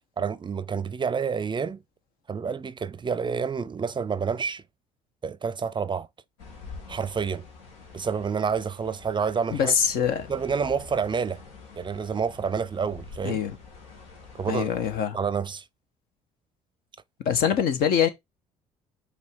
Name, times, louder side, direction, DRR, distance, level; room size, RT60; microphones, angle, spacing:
voice 1, 0.2-1.8 2.3-4.6 5.2-6.1 6.9-7.4 7.9-9.7 10.3-11.4 11.8-13.4 14.3-14.7 15.1-15.6, right 6 dB, 30° right, 0.5 m, -28 dB
sound 1, 6.4-15.0, left 4 dB, 85° left, 1.9 m, -46 dB
voice 2, 9.5-10.3 13.2-13.6 14.5-15.2 17.2-18.1, left 8 dB, 70° left, 1.3 m, -24 dB
5.4 x 3.5 x 5.3 m
hypercardioid pair, 65°, 16 cm